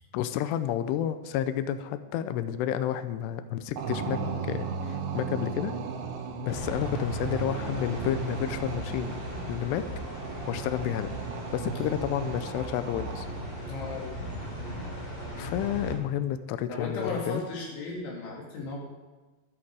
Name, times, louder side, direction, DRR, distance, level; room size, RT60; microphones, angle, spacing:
voice 1, 0.1-5.7 6.4-9.2 9.5-9.9 10.5-11.1 11.5-13.3 15.4-17.4, left 10 dB, 90° left, 11 dB, 2.4 m, -30 dB
sound 1, 3.8-13.6, right 6 dB, 70° right, 3.1 m, -36 dB
sound 2, 6.5-15.9, equal, 30° left, 4.2 m, -37 dB
voice 2, 13.7-14.3 16.7-18.8, left 3 dB, 75° left, -2 dB, 4.9 m, -35 dB
13.0 x 11.0 x 4.8 m, 1.2 s
omnidirectional pair, 5.5 m